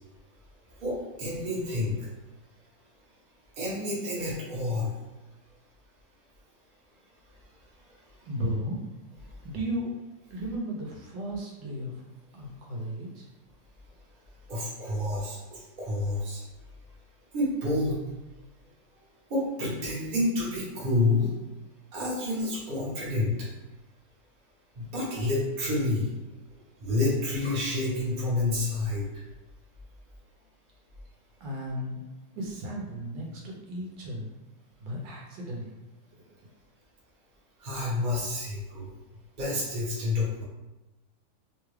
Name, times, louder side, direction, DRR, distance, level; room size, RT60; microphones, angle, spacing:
voice 1, 0.8-2.0 3.6-4.9 14.5-16.4 17.3-18.0 19.3-21.3 21.9-23.3 24.8-26.1 26.8-29.0 37.6-38.9 39.4-40.4, left 2 dB, 35° right, -6 dB, 0.9 m, -29 dB
voice 2, 8.2-8.8 9.4-9.9 10.3-12.0 12.3-13.3 26.5-26.6 31.4-32.0 32.3-34.3 34.8-35.7 36.1-36.2, equal, 80° right, -2 dB, 1.4 m, -35 dB
3.6 x 2.3 x 3.1 m, 1.1 s
omnidirectional pair, 2.0 m